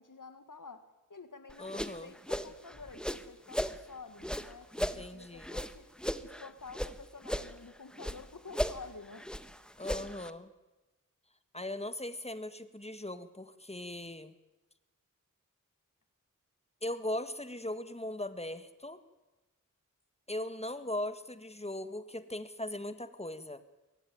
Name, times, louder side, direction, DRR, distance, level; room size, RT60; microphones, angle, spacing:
voice 1, 0.0-5.9 6.2-9.4, left 4 dB, 75° left, 10 dB, 1.9 m, -50 dB
sound 1, 1.5-3.8 4.2-6.9 7.2-8.2 8.5-10.3, equal, 5° left, 1.3 m, -36 dB
voice 2, 1.6-2.1 4.8-5.6 9.8-10.5 11.5-14.3 16.8-19.0 20.3-23.6, left 1 dB, 20° left, 12 dB, 1.6 m, -39 dB
23.0 x 18.0 x 9.4 m, 1.1 s
wide cardioid pair, 50°, 32 cm